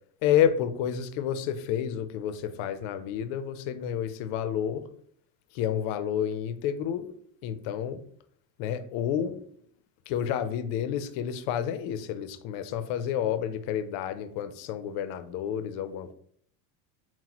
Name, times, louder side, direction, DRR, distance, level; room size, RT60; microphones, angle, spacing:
voice 1, 0.2-4.9 5.5-7.1 7.4-8.0 8.6-9.4 10.1-16.1, left 9 dB, 65° left, 0.6 m, -30 dB
5.8 x 2.1 x 2.9 m
supercardioid pair, 115°, 48 cm